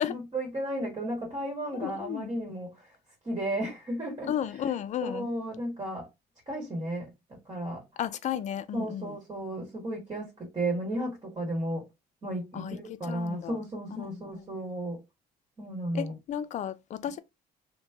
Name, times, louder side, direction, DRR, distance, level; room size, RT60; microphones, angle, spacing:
voice 1, 0.0-2.9 3.2-4.3 5.0-6.1 6.5-7.1 7.4-7.8 8.7-11.8 12.2-15.0 15.6-16.1, right 1 dB, 30° right, 1.3 m, -34 dB
voice 2, 1.7-2.3 4.3-5.3 8.0-9.2 12.5-13.6 13.9-14.5 15.9-17.2, left 9 dB, 45° left, 0.4 m, -34 dB
3.0 x 2.2 x 3.4 m
cardioid pair, 110°, 17 cm